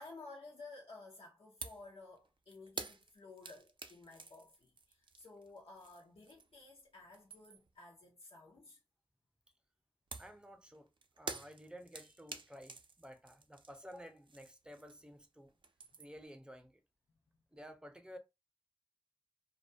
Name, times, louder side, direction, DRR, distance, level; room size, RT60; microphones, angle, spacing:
voice 1, 0.0-8.8 16.0-16.1, left 3 dB, 85° left, 0.6 m, -54 dB
sound 1, 1.6-1.9 2.2-6.6 7.0-7.8 10.1-15.2 15.5-16.3, right 4 dB, 60° right, 0.4 m, -49 dB
voice 2, 10.2-10.9 11.2-15.5 16.0-16.8 17.5-18.2, equal, 10° right, 0.5 m, -53 dB
2.2 x 2.1 x 2.6 m
wide cardioid pair, 60°, 9 cm